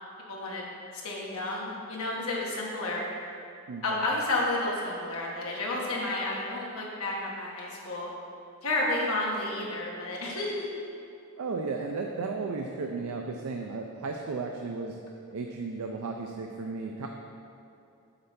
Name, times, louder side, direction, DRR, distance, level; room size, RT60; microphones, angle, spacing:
voice 1, 0.3-0.6 1.0-3.0 3.8-8.1 8.6-10.8, left 2 dB, 70° left, -3 dB, 1.3 m, -31 dB
voice 2, 3.7-4.1 11.4-15.0 15.3-17.1, right 4 dB, 75° right, 2 dB, 0.4 m, -34 dB
7.9 x 3.3 x 5.7 m, 2.7 s
head